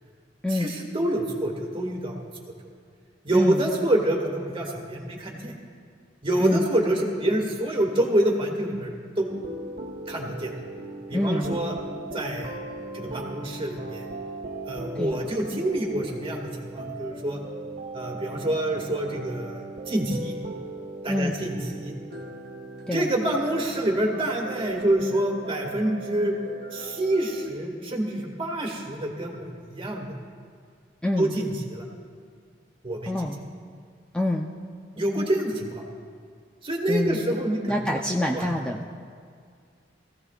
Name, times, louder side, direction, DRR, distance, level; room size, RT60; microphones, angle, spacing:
voice 1, 0.5-2.2 3.2-5.5 6.2-9.3 10.1-10.5 11.1-11.8 12.1-12.6 12.9-14.1 14.7-17.4 17.9-20.3 21.0-21.9 22.9-26.3 26.7-30.2 31.2-31.9 32.8-33.3 35.0-35.8 36.6-38.0 38.3-38.5, right 1 dB, 30° right, 0 dB, 1.9 m, -27 dB
sound 1, 9.3-27.5, right 2 dB, 60° right, 1.4 m, -38 dB
voice 2, 11.1-11.6 15.0-15.2 21.1-21.4 22.9-23.1 31.0-31.3 33.1-33.4 34.1-34.5 36.9-37.3 37.7-38.9, left 1 dB, 5° left, -1 dB, 0.5 m, -26 dB
22.0 x 15.5 x 2.4 m, 2.1 s
head